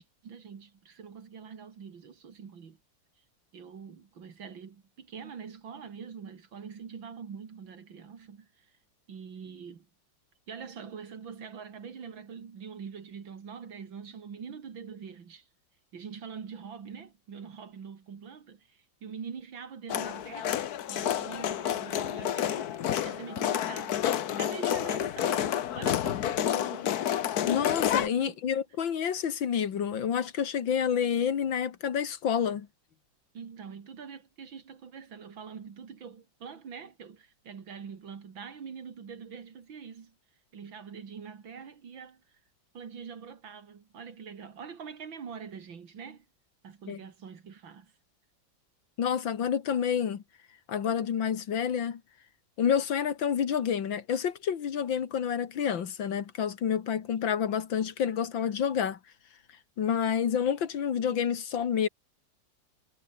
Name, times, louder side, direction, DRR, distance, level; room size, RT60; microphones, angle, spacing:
voice 1, 0.0-2.8 3.5-8.8 9.1-9.9 10.5-15.5 15.9-27.0 28.1-28.4 33.3-40.1 40.5-42.2 42.7-46.3 46.6-47.9, right 6 dB, 85° right, 3.0 m, -44 dB
sound 1, 19.9-28.1, left 10 dB, 60° left, 1.3 m, -29 dB
voice 2, 27.5-32.7 46.9-47.0 49.0-50.2 50.7-52.0 52.6-59.0 59.8-61.9, left 8 dB, 80° left, 2.3 m, -29 dB
omnidirectional pair, 2.1 m